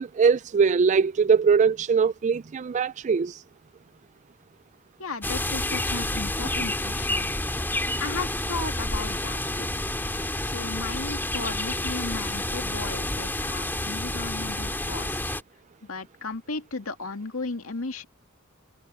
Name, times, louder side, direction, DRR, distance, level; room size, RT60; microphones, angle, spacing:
voice 1, 0.0-3.4, right 5 dB, 35° right, 0.3 m, -21 dB
voice 2, 5.0-7.3 8.0-9.7 10.4-15.3 15.8-18.1, left 3 dB, 90° left, 2.1 m, -35 dB
sound 1, 5.2-15.4, left 1 dB, 10° left, 2.6 m, -29 dB
head